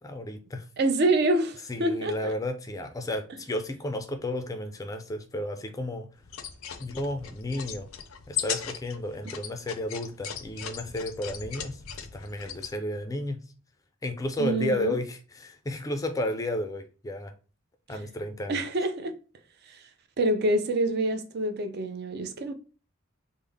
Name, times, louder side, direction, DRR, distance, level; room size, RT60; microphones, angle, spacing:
voice 1, 0.0-0.6 1.7-6.1 6.8-7.9 8.3-11.8 12.1-13.4 14.0-17.3 17.9-18.6, left 1 dB, 15° left, 0.3 m, -32 dB
voice 2, 0.8-2.3 14.4-15.0 17.9-18.0 18.5-19.1 19.7-19.8 20.2-22.5, right 2 dB, 55° right, 0.4 m, -26 dB
sound 1, 6.2-12.7, left 9 dB, 80° left, 0.4 m, -38 dB
3.5 x 2.0 x 3.4 m
head